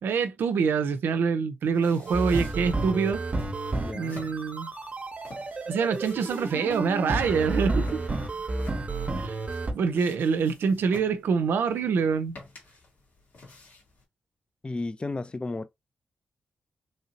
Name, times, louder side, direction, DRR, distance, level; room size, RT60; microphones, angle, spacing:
voice 1, 0.0-3.2 3.9-4.7 5.7-8.0 9.2-9.4 9.7-12.4, right 5 dB, 80° right, 0.5 m, -25 dB
sound 1, 1.6-14.0, left 3 dB, 75° left, 1.8 m, -51 dB
sound 2, 2.1-9.7, right 2 dB, 40° right, 0.7 m, -31 dB
voice 2, 3.8-4.2 14.6-15.7, left 2 dB, 30° left, 0.4 m, -33 dB
sound 3, 7.1-10.0 10.4-10.5, equal, ahead, 0.9 m, -45 dB
3.1 x 2.8 x 2.8 m
supercardioid pair, 40°, 4 cm